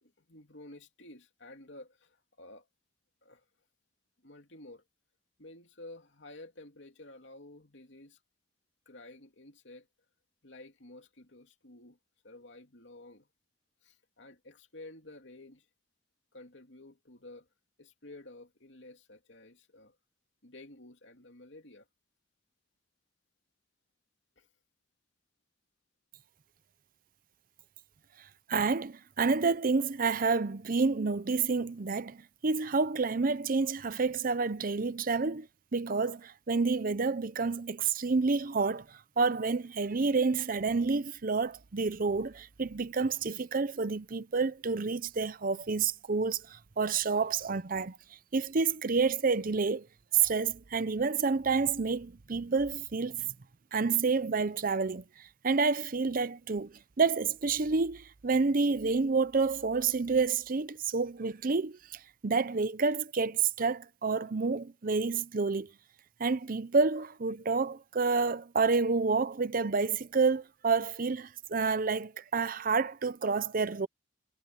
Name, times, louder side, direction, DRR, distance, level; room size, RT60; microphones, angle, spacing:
voice 1, 0.0-2.7 3.2-3.4 4.2-4.8 5.4-8.2 8.8-9.9 10.4-12.0 12.2-13.3 13.8-15.7 16.3-17.5 17.8-20.0 20.4-21.9 24.4-24.5, left 2 dB, 70° left, 3.0 m, -51 dB
voice 2, 28.5-35.5 35.7-48.0 48.3-49.9 50.1-53.3 53.7-65.7 66.2-73.9, right 4 dB, 45° right, 0.7 m, -29 dB
head